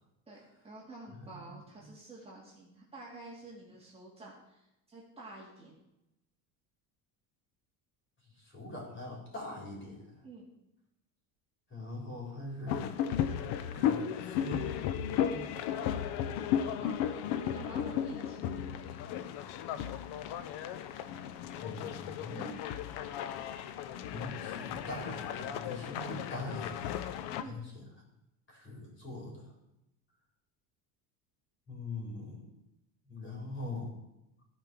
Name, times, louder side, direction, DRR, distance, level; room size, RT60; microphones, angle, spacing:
voice 1, 0.3-5.7 10.2-10.5 15.2-15.4 16.3-17.1 17.5-18.5 27.4-27.6, right 2 dB, 15° right, -5 dB, 2.3 m, -49 dB
voice 2, 8.5-10.0 11.7-12.9 13.7-14.8 15.1-15.4 15.7-15.8 21.6-22.6 24.1-26.9 28.5-29.4 31.7-32.4 33.1-33.9, left 1 dB, 30° left, -2 dB, 3.9 m, -42 dB
sound 1, 12.7-27.4, left 9 dB, 70° left, 0.9 m, -35 dB
14.0 x 5.2 x 6.0 m, 0.89 s
cardioid pair, 150°, 39 cm